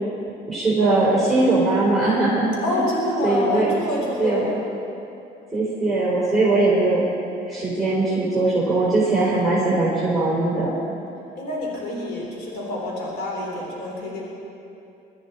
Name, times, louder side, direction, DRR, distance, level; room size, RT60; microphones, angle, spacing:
voice 1, 0.5-2.5 2.8-2.9 3.2-3.7 4.2-4.5 5.5-7.0 7.5-10.7, right 2 dB, ahead, -8 dB, 4.4 m, -20 dB
voice 2, 2.6-4.4 11.4-14.3, left 1 dB, 70° left, -3 dB, 3.8 m, -27 dB
22.0 x 14.0 x 4.3 m, 2.7 s
cardioid pair, 110°, 17 cm